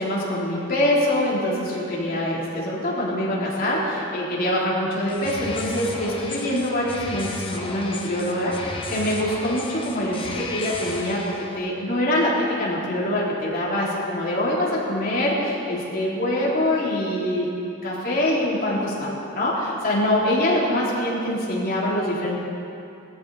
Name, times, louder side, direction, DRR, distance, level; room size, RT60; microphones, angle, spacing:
voice 1, 0.0-22.4, left 1 dB, 45° left, -6 dB, 3.5 m, -24 dB
sound 1, 5.1-11.6, left 2 dB, 25° left, 1.2 m, -34 dB
18.5 x 13.5 x 4.2 m, 2.7 s
head